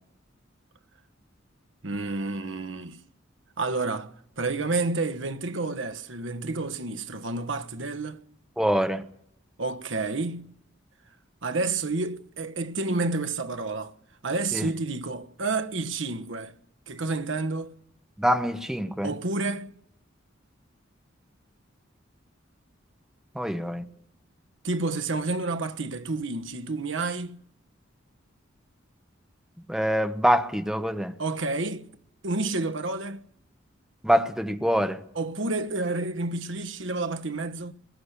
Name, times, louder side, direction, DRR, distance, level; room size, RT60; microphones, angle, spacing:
voice 1, 1.8-3.0 3.6-8.2 9.6-10.5 11.4-13.9 14.2-16.5 16.9-17.7 19.0-19.7 24.6-27.4 31.2-31.9 32.2-33.2 35.1-37.7, right 3 dB, 70° right, 1.3 m, -30 dB
voice 2, 8.6-9.0 14.5-14.6 18.2-19.1 23.4-23.8 29.7-31.1 34.0-35.0, equal, 5° right, 0.8 m, -24 dB
21.5 x 16.5 x 8.2 m
head